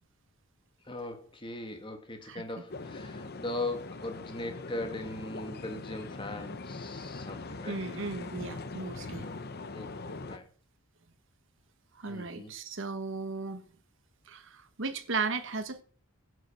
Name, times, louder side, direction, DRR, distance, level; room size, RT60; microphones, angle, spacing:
voice 1, 0.8-7.8 9.2-9.3 9.7-10.5 12.0-12.5, left 2 dB, 25° left, 1.7 m, -39 dB
sound 1, 2.7-10.4, left 3 dB, 50° left, 0.8 m, -41 dB
voice 2, 7.7-9.2 12.0-13.6 14.3-15.8, right 4 dB, 60° right, 1.2 m, -36 dB
11.5 x 8.3 x 5.6 m
head